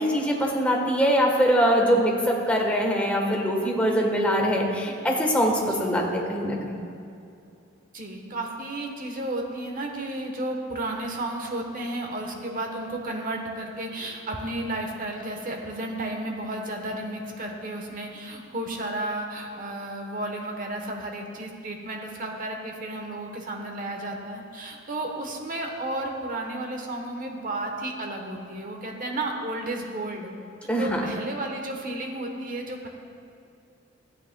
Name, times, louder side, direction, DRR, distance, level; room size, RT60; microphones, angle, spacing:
voice 1, 0.0-6.8 30.7-31.0, equal, 5° left, -1 dB, 1.1 m, -23 dB
voice 2, 7.9-30.3 30.8-32.9, right 1 dB, 45° right, 2 dB, 1.0 m, -33 dB
14.0 x 8.7 x 2.2 m, 2.6 s
head